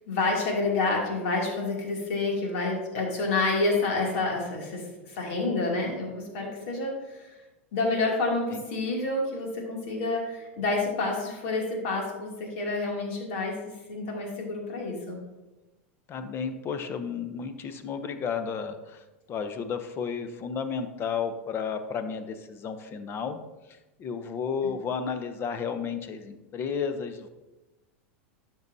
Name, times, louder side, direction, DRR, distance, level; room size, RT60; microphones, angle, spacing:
voice 1, 0.1-7.3 7.7-15.2 24.6-24.7, left 3 dB, 65° left, -1 dB, 2.7 m, -29 dB
voice 2, 16.1-23.4 23.7-27.3, left 6 dB, 35° left, 9 dB, 0.8 m, -33 dB
11.5 x 6.2 x 2.7 m, 1.1 s
hypercardioid pair, 110°, 7 cm